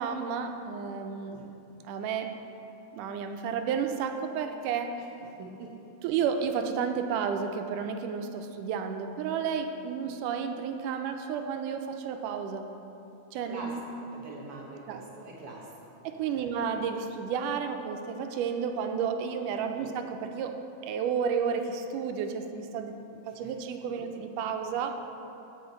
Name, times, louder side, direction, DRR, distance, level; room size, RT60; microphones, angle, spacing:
voice 1, 0.0-1.5 1.8-2.4 2.9-5.0 6.0-12.7 13.3-13.8 14.9-15.0 16.0-23.0 23.3-25.0, right 6 dB, 90° right, 6 dB, 2.2 m, -32 dB
voice 2, 5.4-5.7 13.5-13.7 14.1-15.7 16.3-16.5 19.7-19.9 23.3-23.5, right 3 dB, 65° right, -2 dB, 1.5 m, -44 dB
16.5 x 5.7 x 3.9 m, 2.9 s
omnidirectional pair, 3.7 m